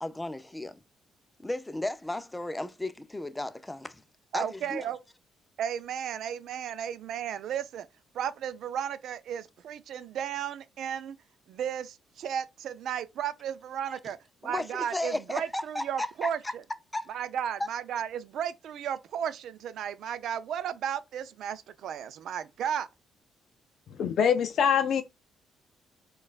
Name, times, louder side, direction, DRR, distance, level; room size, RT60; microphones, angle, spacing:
voice 1, 0.0-0.8 1.4-4.0 4.3-4.9 13.9-14.0 14.4-16.5 16.9-17.1 17.6-17.7, left 1 dB, 10° left, 0.5 m, -34 dB
voice 2, 4.3-5.0 5.6-7.9 8.1-11.2 11.5-14.2 14.4-16.4 17.1-22.9, right 9 dB, 75° right, 0.4 m, -34 dB
voice 3, 24.0-25.0, left 7 dB, 65° left, 0.5 m, -24 dB
4.4 x 2.3 x 2.4 m
cardioid pair, 90°, 0 cm